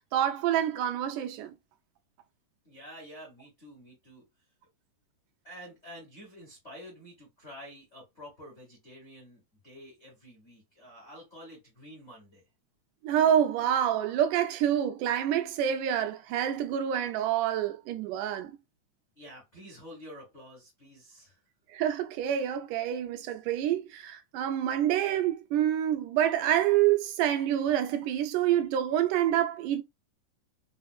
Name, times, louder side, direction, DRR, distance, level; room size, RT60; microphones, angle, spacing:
voice 1, 0.1-1.6 13.0-18.5 21.7-29.8, right 10 dB, 90° right, 2.1 m, -27 dB
voice 2, 2.6-4.2 5.4-12.4 19.2-21.4, equal, 85° left, 0.6 m, -49 dB
5.0 x 2.1 x 2.2 m
omnidirectional pair, 3.6 m